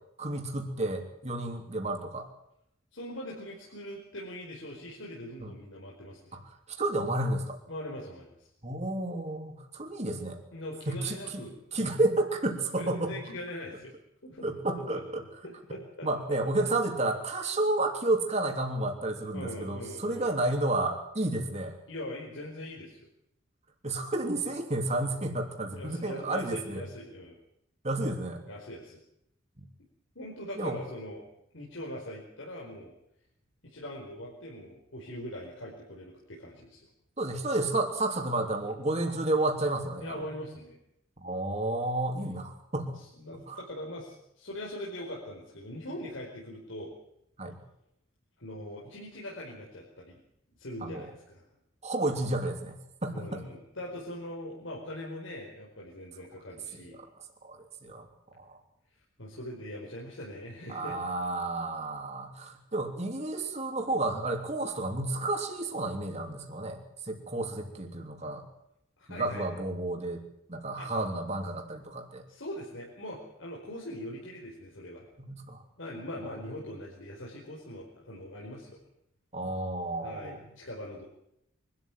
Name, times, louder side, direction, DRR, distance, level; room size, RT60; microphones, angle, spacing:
voice 1, 0.2-2.3 5.4-5.5 6.3-6.4 6.8-7.6 8.6-10.4 10.9-11.4 11.7-13.1 14.4-15.2 16.0-21.8 23.8-26.8 27.8-28.4 29.6-29.7 30.6-30.8 37.2-40.3 41.2-43.0 43.5-43.6 47.4-47.6 50.8-51.1 51.8-53.4 57.4-58.1 58.3-58.6 60.7-66.8 67.0-68.4 69.1-70.2 70.5-72.2 75.3-75.6 79.3-80.4, right 2 dB, 35° right, 3 dB, 3.2 m, -31 dB
voice 2, 2.9-6.4 7.7-8.5 10.5-12.0 12.7-13.9 14.2-14.5 14.7-15.0 15.4-16.7 19.3-20.3 21.9-23.1 25.8-27.4 28.5-29.0 30.1-31.2 31.5-32.9 33.6-36.8 40.0-40.8 42.9-47.0 48.4-50.2 50.6-51.4 53.1-57.0 59.2-61.0 69.0-69.5 70.8-70.9 72.3-75.1 75.8-78.8 80.0-81.0, left 1 dB, 70° left, -3 dB, 4.9 m, -42 dB
24.5 x 13.0 x 9.3 m, 0.78 s
head